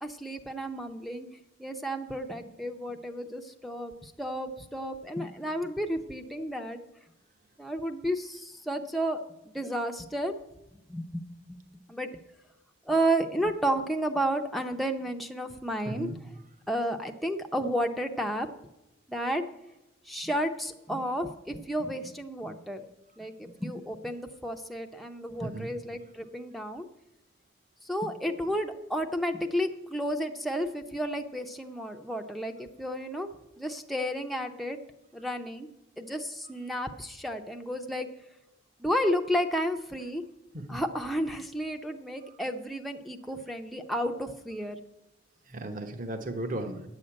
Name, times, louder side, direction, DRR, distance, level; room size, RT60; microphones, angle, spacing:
voice 1, 0.0-1.3 1.6-6.8 7.6-10.4 10.9-12.2 12.9-16.1 16.7-18.5 19.1-19.4 20.1-22.8 23.2-26.9 27.8-33.3 33.6-34.8 35.1-35.7 36.0-38.1 38.8-40.2 40.7-44.8, equal, ahead, 3 dB, 0.6 m, -32 dB
voice 2, 15.9-16.2 25.4-25.7 40.7-40.8 45.5-46.9, right 1 dB, 45° right, 7 dB, 1.0 m, -35 dB
9.4 x 6.5 x 8.7 m, 0.91 s
head